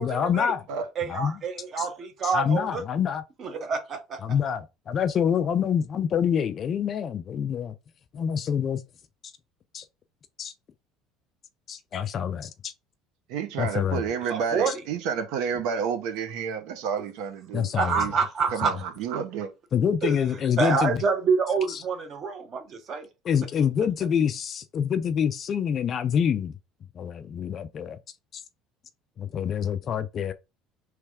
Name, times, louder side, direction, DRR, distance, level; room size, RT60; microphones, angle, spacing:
voice 1, 0.0-0.7 1.1-1.4 1.8-1.9 2.2-3.2 4.2-7.8 8.1-8.8 9.7-9.8 10.4-10.5 11.7-12.7 13.6-14.0 14.7-14.8 17.5-18.1 19.7-21.0 21.7-21.8 23.2-26.5 27.0-28.0 28.3-28.4 29.2-30.3, left 8 dB, 30° left, 0.4 m, -26 dB
voice 2, 1.0-2.8 3.4-4.2 14.3-14.7 15.7-15.8 17.8-18.7 20.6-23.1, right 5 dB, 30° right, 0.9 m, -27 dB
voice 3, 13.3-17.7 17.9-18.1 18.5-19.5, right 7 dB, 60° right, 0.9 m, -30 dB
3.4 x 3.2 x 4.8 m
cardioid pair, 180°, 0 cm